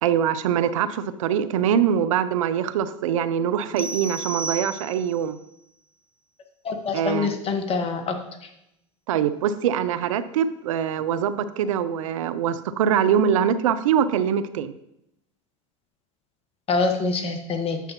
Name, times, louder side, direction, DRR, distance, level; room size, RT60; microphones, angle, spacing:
voice 1, 0.0-5.4 6.9-7.3 9.1-14.7, right 8 dB, 75° right, 13 dB, 0.5 m, -23 dB
sound 1, 3.8-5.3, right 3 dB, 10° right, 0.6 m, -33 dB
voice 2, 6.6-8.2 16.7-17.8, left 4 dB, 35° left, 5 dB, 1.4 m, -25 dB
9.1 x 6.9 x 3.0 m, 0.81 s
hypercardioid pair, 85°, 17 cm